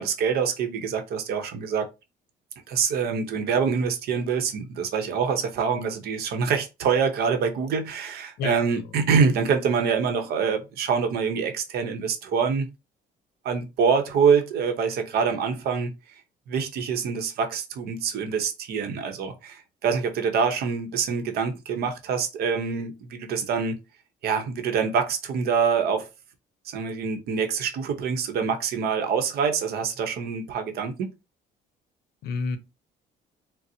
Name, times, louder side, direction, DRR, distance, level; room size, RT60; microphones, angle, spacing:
voice 1, 0.0-1.9 2.7-12.7 13.4-15.9 16.5-23.8 24.2-26.1 26.6-31.1, right 6 dB, 70° right, 0.7 m, -25 dB
voice 2, 8.4-8.9 32.2-32.6, left 4 dB, 70° left, 0.6 m, -30 dB
4.0 x 2.0 x 2.6 m
cardioid pair, 110°, 17 cm